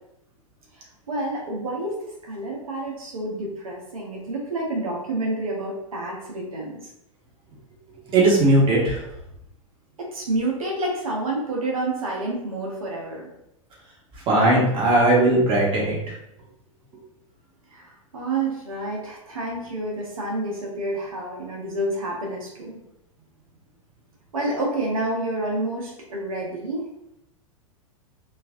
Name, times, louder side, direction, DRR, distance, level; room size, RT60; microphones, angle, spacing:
voice 1, 1.1-6.8 10.0-13.2 17.7-22.8 24.3-26.9, right 2 dB, 85° right, -2 dB, 1.1 m, -29 dB
voice 2, 8.1-9.0 14.3-16.1, right 2 dB, 30° right, -3 dB, 1.4 m, -18 dB
4.4 x 2.6 x 2.5 m, 0.81 s
hypercardioid pair, 110°, 18 cm